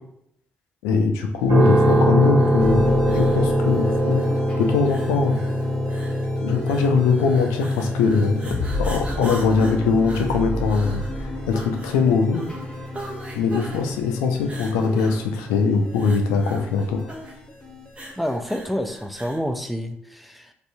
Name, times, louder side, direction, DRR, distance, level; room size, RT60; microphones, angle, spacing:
voice 1, 0.8-4.2 4.6-5.4 6.4-8.4 8.8-12.5 13.3-17.0, left 5 dB, 85° left, 3 dB, 0.3 m, -21 dB
sound 1, 1.5-15.5, equal, 80° right, 0.9 m, -24 dB
sound 2, 1.6-19.5, right 1 dB, 25° right, 0.7 m, -41 dB
sound 3, 2.6-18.4, left 2 dB, 15° left, 0.7 m, -34 dB
voice 2, 18.2-20.5, equal, ahead, 6 dB, 0.3 m, -28 dB
2.6 x 2.3 x 2.6 m, 0.77 s
hypercardioid pair, 50°, 5 cm